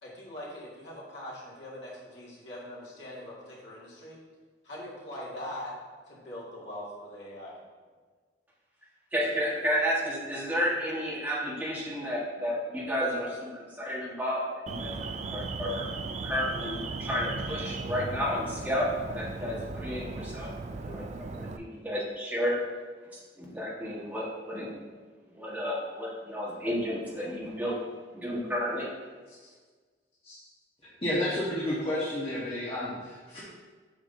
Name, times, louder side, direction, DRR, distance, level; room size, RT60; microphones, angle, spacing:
voice 1, 0.0-4.2 4.6-5.7 6.1-7.6, left 1 dB, 70° left, -6 dB, 2.1 m, -42 dB
voice 2, 9.1-15.8 16.2-20.5 20.8-22.5 23.4-24.7 25.3-27.8 28.1-28.9, equal, 10° right, -6 dB, 1.6 m, -32 dB
Alarm, 14.7-21.6, right 3 dB, 40° right, 0.3 m, -37 dB
voice 3, 31.0-33.4, left 1 dB, 30° left, -9 dB, 1.3 m, -31 dB
8.1 x 5.9 x 2.7 m, 1.5 s
head